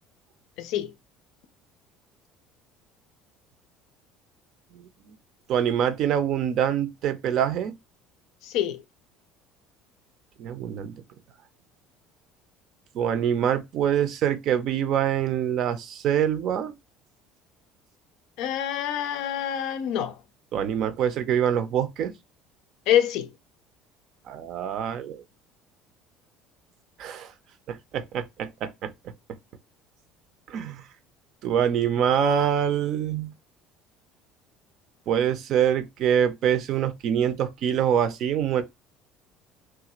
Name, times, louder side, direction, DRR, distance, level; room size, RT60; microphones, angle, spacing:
voice 1, 0.6-0.9 8.5-8.8 18.4-20.1 22.9-23.3, left 10 dB, 65° left, 0.5 m, -26 dB
voice 2, 5.5-7.7 10.4-10.9 12.9-16.7 20.5-22.1 24.3-25.2 27.0-27.3 27.7-28.9 30.5-30.8 31.4-33.3 35.1-38.6, right 9 dB, 50° right, 0.5 m, -25 dB
3.2 x 2.4 x 2.9 m
cardioid pair, 155°, 0 cm